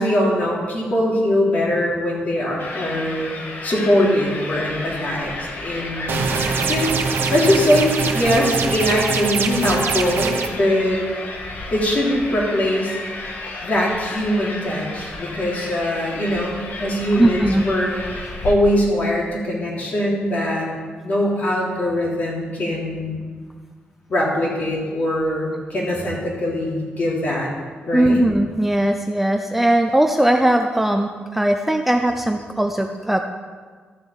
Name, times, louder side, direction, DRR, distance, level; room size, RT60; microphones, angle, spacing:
voice 1, 0.0-3.3 3.6-6.2 6.7-6.9 7.3-11.0 11.7-13.0 13.6-20.7 21.0-23.2 24.1-27.5 27.9-28.2, left 1 dB, 45° left, -3 dB, 3.3 m, -21 dB
sound 1, 2.6-18.5, left 2 dB, 60° left, 1.7 m, -33 dB
sound 2, 6.1-10.5, right 5 dB, 70° right, 1.1 m, -23 dB
voice 2, 17.2-17.6 27.9-33.2, right 1 dB, 5° right, 4 dB, 0.6 m, -19 dB
13.5 x 6.9 x 7.1 m, 1.5 s
wide cardioid pair, 145°, 4 cm